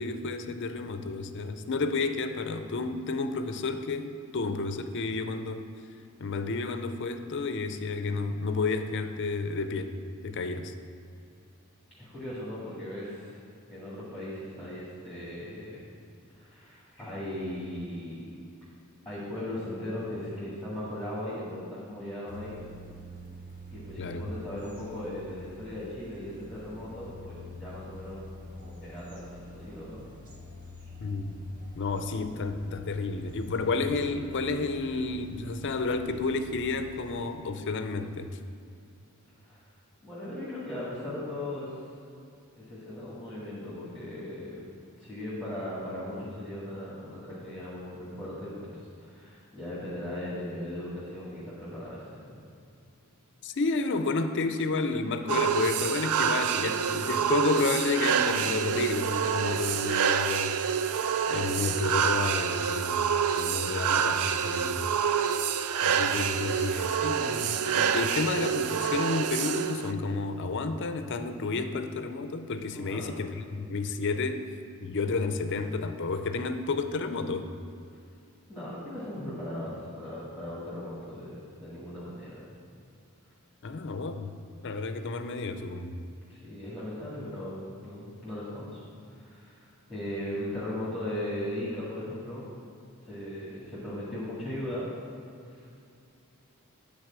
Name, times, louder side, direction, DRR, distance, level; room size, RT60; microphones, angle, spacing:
voice 1, 0.0-5.7 6.2-9.9 10.2-10.7 24.0-24.3 31.0-31.4 31.8-38.3 53.4-60.6 61.3-63.1 63.4-64.8 65.8-74.4 74.8-77.5 83.6-84.3 84.6-86.0, left 3 dB, 55° left, 9 dB, 0.5 m, -31 dB
voice 2, 12.0-13.4 13.7-15.8 16.3-18.3 19.1-22.6 23.7-28.2 28.6-30.0 39.4-39.6 40.0-41.8 42.5-44.6 45.0-48.7 49.0-52.4 72.7-73.1 78.5-82.4 86.3-87.6 87.8-88.8 89.1-92.5 93.1-94.9 95.5-95.7, left 1 dB, ahead, -9 dB, 1.9 m, -38 dB
sound 1, 22.3-37.2, left 1 dB, 40° right, 1.6 m, -47 dB
sound 2, 55.3-69.9, right 7 dB, 80° right, 0.4 m, -27 dB
9.6 x 4.0 x 7.4 m, 2.5 s
head